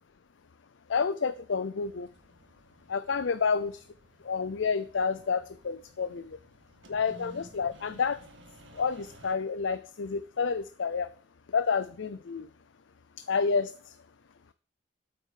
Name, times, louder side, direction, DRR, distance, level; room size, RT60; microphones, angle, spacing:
voice 1, 0.9-2.1 2.9-3.7 4.2-6.4 6.9-8.2 8.7-11.1 11.5-12.5 13.2-14.0, left 5 dB, 85° left, 13 dB, 0.5 m, -29 dB
sound 1, 1.8-9.4, right 1 dB, 75° right, 1.8 m, -55 dB
8.8 x 7.9 x 6.5 m, 0.42 s
head